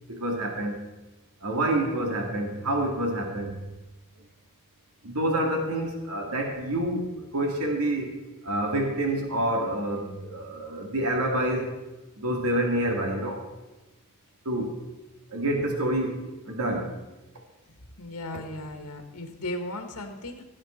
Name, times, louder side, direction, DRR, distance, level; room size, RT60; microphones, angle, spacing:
voice 1, 0.1-0.8 1.4-3.5 5.0-7.1 7.3-8.1 8.4-11.7 12.2-13.4 14.5-14.8 15.3-16.9, right 1 dB, 80° right, 2 dB, 2.2 m, -27 dB
voice 2, 18.0-20.4, left 1 dB, 85° left, 5 dB, 1.7 m, -36 dB
17.0 x 8.7 x 4.4 m, 1.1 s
head